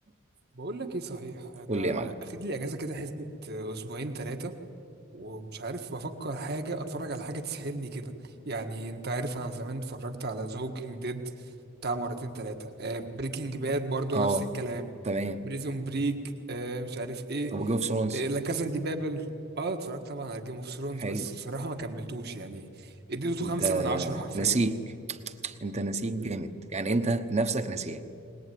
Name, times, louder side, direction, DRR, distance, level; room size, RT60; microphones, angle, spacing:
voice 1, 0.5-4.5 5.1-11.2 11.8-14.9 15.4-16.2 16.5-17.5 18.1-19.3 19.6-24.6 26.2-26.3, right 2 dB, 55° right, 6 dB, 1.7 m, -34 dB
voice 2, 1.7-2.2 14.1-14.4 15.0-15.4 17.5-18.2 21.0-21.3 23.4-24.8 25.1-28.0, right 3 dB, 35° right, 9 dB, 1.1 m, -29 dB
22.0 x 20.0 x 9.4 m, 2.6 s
head